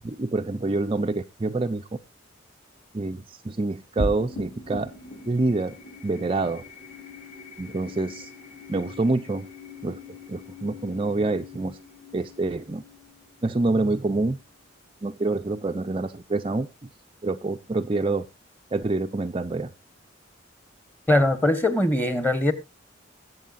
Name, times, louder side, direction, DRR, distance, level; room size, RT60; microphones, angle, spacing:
voice 1, 0.0-2.0 2.9-4.9 5.3-5.8 6.0-6.6 7.6-8.3 8.7-9.5 9.8-10.0 10.3-11.8 12.1-12.8 13.4-14.4 15.0-16.7 17.2-18.3 18.7-19.7, right 2 dB, 25° right, 0.5 m, -26 dB
sound 1, 4.0-14.6, left 1 dB, 60° left, 5.8 m, -40 dB
voice 2, 21.1-22.5, left 1 dB, 10° left, 1.3 m, -21 dB
21.5 x 7.9 x 2.5 m
head